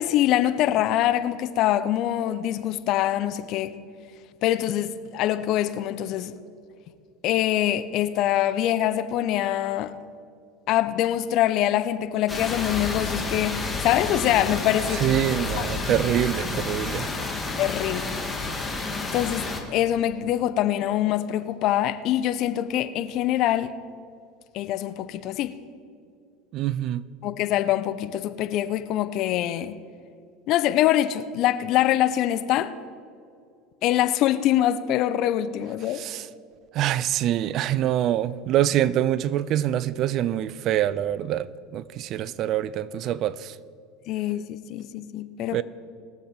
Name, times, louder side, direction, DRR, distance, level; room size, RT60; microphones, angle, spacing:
voice 1, 0.0-3.8 4.4-6.3 7.2-9.9 10.7-15.2 17.6-18.1 19.1-23.7 24.5-25.6 27.2-29.8 30.5-32.7 33.8-36.0 44.1-45.6, left 12 dB, 55° left, 0.7 m, -24 dB
sound 1, 12.3-19.6, left 3 dB, 15° left, 2.1 m, -30 dB
voice 2, 15.0-17.1 26.5-27.0 35.9-36.3 36.7-43.5 45.5-45.6, right 12 dB, 50° right, 0.5 m, -25 dB
21.0 x 7.4 x 4.3 m
hypercardioid pair, 80°, 0 cm